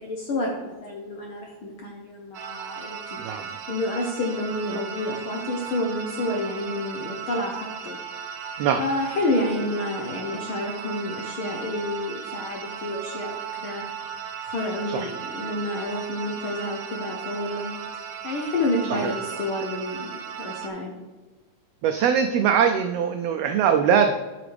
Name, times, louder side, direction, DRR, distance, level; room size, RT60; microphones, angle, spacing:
voice 1, 0.0-3.2 3.7-8.0 8.8-13.8 14.4-17.8 18.2-20.1 20.4-20.9, left 1 dB, 65° left, 1 dB, 1.3 m, -29 dB
sound 1, 2.3-20.7, right 7 dB, 70° right, 1.4 m, -36 dB
voice 2, 21.8-24.1, right 7 dB, 90° right, 6 dB, 1.4 m, -21 dB
13.5 x 5.8 x 3.4 m, 1.3 s
omnidirectional pair, 3.5 m